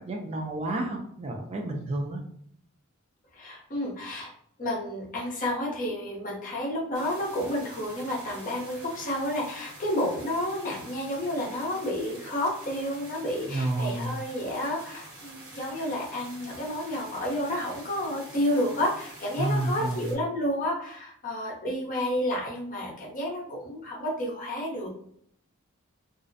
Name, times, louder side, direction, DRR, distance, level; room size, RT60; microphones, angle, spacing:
voice 1, 0.0-2.2 13.5-14.1 19.4-20.1, right 2 dB, 30° right, 1 dB, 0.3 m, -30 dB
voice 2, 3.3-4.3 4.6-24.9, left 1 dB, 40° left, -2 dB, 0.7 m, -30 dB
sound 1, 6.9-20.1, right 1 dB, 80° right, 1.1 m, -47 dB
2.4 x 2.0 x 2.5 m, 0.66 s
head